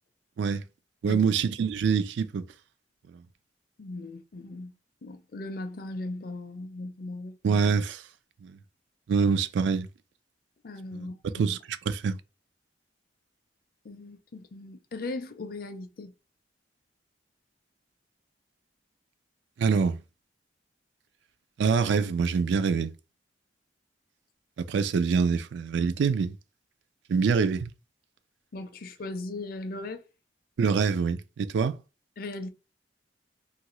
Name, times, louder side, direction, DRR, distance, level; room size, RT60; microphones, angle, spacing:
voice 1, 1.0-2.4 7.4-8.0 8.4-8.6 9.1-9.9 10.9-12.2 19.6-20.0 21.6-22.9 24.6-26.4 27.1-27.7 30.6-31.8, right 5 dB, 70° right, 0.3 m, -25 dB
voice 2, 3.8-4.7 5.0-7.4 10.6-11.4 13.8-16.1 28.5-30.0 32.2-32.5, left 2 dB, 50° left, 0.4 m, -38 dB
2.7 x 2.4 x 3.0 m
head